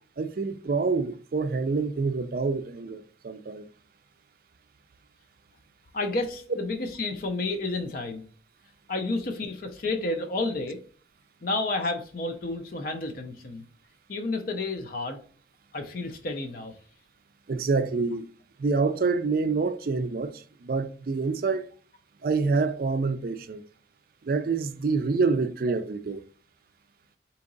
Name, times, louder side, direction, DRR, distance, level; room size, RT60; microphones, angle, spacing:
voice 1, 0.2-3.7 6.5-6.6 17.5-18.3 18.6-21.7 22.2-23.6 24.2-26.2, right 4 dB, 50° right, 0.4 m, -27 dB
voice 2, 5.9-8.2 8.9-10.8 11.4-13.6 14.1-15.2 15.7-16.7, left 2 dB, 45° left, 0.5 m, -30 dB
3.7 x 2.9 x 3.8 m
head